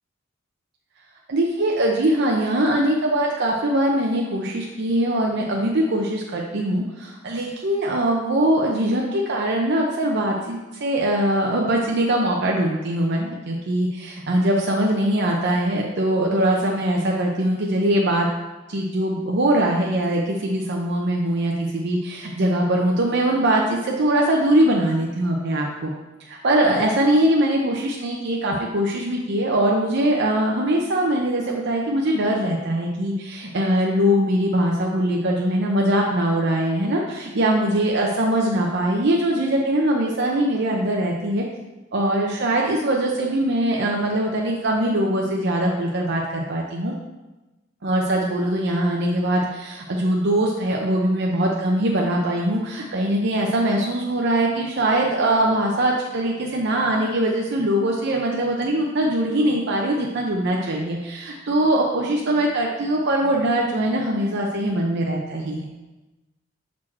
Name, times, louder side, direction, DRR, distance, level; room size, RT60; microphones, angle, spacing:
voice 1, 1.3-18.3 18.7-25.9 26.3-41.4 41.9-46.9 47.8-65.6, right 1 dB, 60° right, -1 dB, 0.6 m, -22 dB
6.1 x 4.3 x 4.3 m, 1.1 s
head